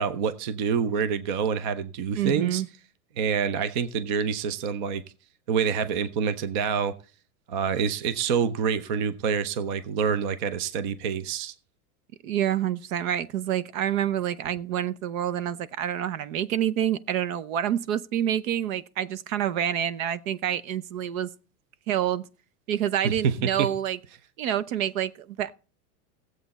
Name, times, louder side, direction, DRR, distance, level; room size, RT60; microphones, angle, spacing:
voice 1, 0.0-2.6 3.2-5.0 5.5-6.9 7.5-11.5 23.0-23.7, right 6 dB, 35° right, 0.4 m, -27 dB
voice 2, 2.1-2.7 12.2-21.3 21.9-22.2 22.7-24.0 24.4-25.5, right 10 dB, 60° right, 0.8 m, -27 dB
16.0 x 7.8 x 4.1 m
supercardioid pair, 170°, 45 cm